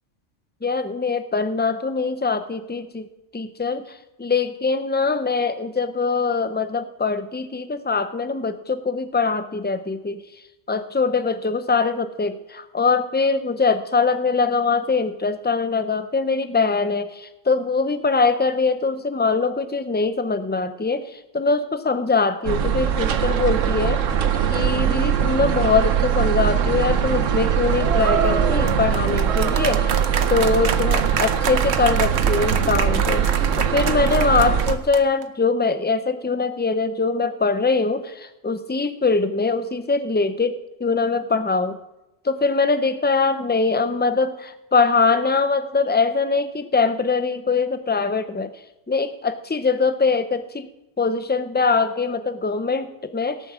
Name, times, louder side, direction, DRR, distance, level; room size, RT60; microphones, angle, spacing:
voice 1, 0.6-3.1 3.3-3.8 4.2-10.2 10.7-21.1 21.3-24.0 24.5-33.2 33.6-41.8 42.2-48.5 48.9-50.7 51.0-53.5, left 4 dB, 15° left, 10 dB, 0.4 m, -22 dB
sound 1, 22.4-34.8, right 8 dB, 85° right, 1.2 m, -21 dB
sound 2, 27.8-35.2, right 7 dB, 65° right, 1.1 m, -28 dB
17.5 x 7.2 x 7.4 m, 0.97 s
omnidirectional pair, 1.3 m